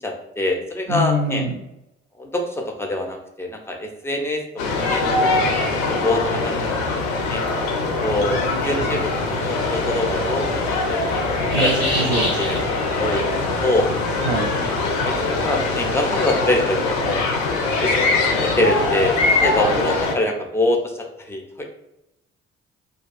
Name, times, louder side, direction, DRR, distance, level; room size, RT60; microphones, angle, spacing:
voice 1, 0.0-1.4 2.2-4.4 4.7-5.7 6.0-6.6 6.9-7.4 8.0-11.0 11.3-11.7 12.1-13.3 13.6-13.9 14.6-14.8 15.0-17.2 17.7-19.1 19.4-21.6, left 1 dB, 10° left, 2 dB, 0.4 m, -25 dB
voice 2, 0.9-1.5 11.5-12.3 14.2-14.5, right 1 dB, 75° right, 4 dB, 0.5 m, -24 dB
sound 1, 4.6-20.1, left 3 dB, 60° left, 0.5 m, -22 dB
Bat Screech, 8.1-16.1, left 1 dB, 85° left, 0.8 m, -32 dB
2.4 x 2.2 x 2.3 m, 0.87 s
figure-of-eight pair, 45°, 31 cm